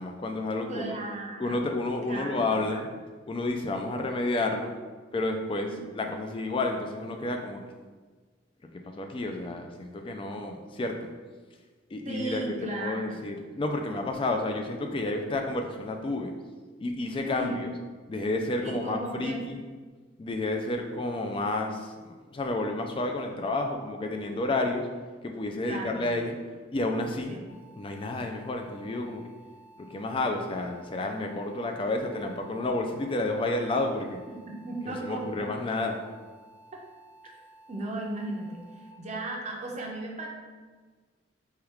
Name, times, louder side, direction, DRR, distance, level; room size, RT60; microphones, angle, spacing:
voice 1, 0.0-1.0 1.4-2.9 3.3-4.7 5.1-5.7 6.0-7.6 8.7-11.1 11.9-16.4 16.8-17.7 18.1-19.6 20.2-24.9 25.2-26.4 26.7-27.3 27.8-29.2 29.8-34.2 34.9-36.0, left 2 dB, 25° left, 4 dB, 0.3 m, -30 dB
voice 2, 0.7-1.6 2.1-2.5 5.7-5.8 12.0-13.2 17.2-17.6 18.6-19.4 25.6-26.0 27.3-27.4 34.5-35.5 37.7-40.3, right 2 dB, 35° right, -1 dB, 0.5 m, -35 dB
sound 1, 27.5-38.9, right 1 dB, 55° left, 0.7 m, -55 dB
4.4 x 2.3 x 3.4 m, 1.4 s
head